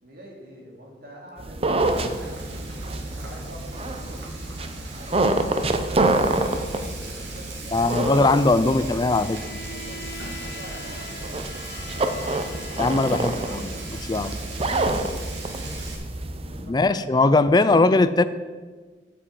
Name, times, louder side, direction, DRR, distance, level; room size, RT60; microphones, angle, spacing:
voice 1, 0.0-2.8 3.2-4.6 5.0-6.2 6.5-8.1 8.5-9.2 9.6-12.7 13.1-13.7 14.1-15.8 16.3-18.1, right 1 dB, 55° right, -1 dB, 2.8 m, -45 dB
sound 1, 1.4-16.7, right 2 dB, 35° right, 0.8 m, -28 dB
Frying (food), 1.8-15.9, right 3 dB, 85° right, 2.9 m, -40 dB
voice 2, 7.7-9.4 12.8-13.7 14.1-14.3 16.7-18.2, left 3 dB, 25° left, 13 dB, 0.4 m, -20 dB
Bowed string instrument, 9.1-14.7, left 3 dB, 60° left, 0.8 m, -42 dB
8.5 x 7.7 x 7.4 m, 1.4 s
head